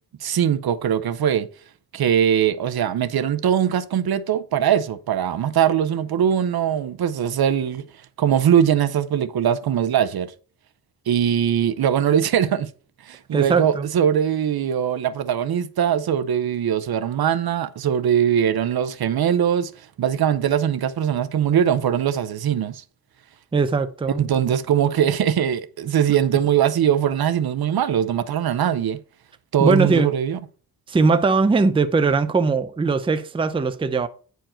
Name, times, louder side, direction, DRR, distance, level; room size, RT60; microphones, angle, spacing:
voice 1, 0.2-1.5 1.9-7.8 8.2-10.3 11.1-12.7 13.0-19.7 20.0-22.8 24.2-29.0 29.5-30.4, right 9 dB, 75° right, 0.7 m, -21 dB
voice 2, 13.3-13.9 23.5-24.3 29.6-30.1 30.9-34.1, right 4 dB, 15° right, 0.4 m, -20 dB
9.2 x 4.6 x 4.3 m
wide cardioid pair, 170°, 37 cm